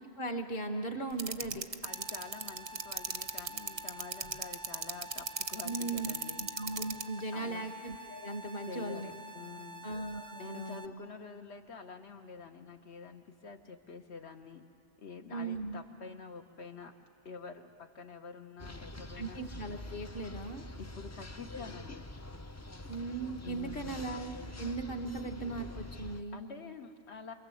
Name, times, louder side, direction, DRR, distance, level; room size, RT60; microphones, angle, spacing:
voice 1, 0.2-1.6 5.6-6.1 6.4-9.1 9.8-10.9 15.3-15.8 19.2-20.6 22.9-26.4, right 2 dB, 50° left, 5 dB, 1.7 m, -38 dB
sound 1, 1.2-7.0, right 5 dB, 35° right, 0.7 m, -34 dB
voice 2, 1.8-6.4 7.3-7.7 8.7-9.9 10.4-14.6 15.0-16.9 17.2-19.4 20.8-22.1 23.4-23.9 26.3-27.3, left 5 dB, 70° left, 5 dB, 1.6 m, -47 dB
sound 2, 1.9-10.9, right 1 dB, 75° right, 1.1 m, -49 dB
sound 3, 18.6-26.2, left 1 dB, 20° left, 0.4 m, -45 dB
28.5 x 22.5 x 7.9 m, 2.5 s
omnidirectional pair, 1.2 m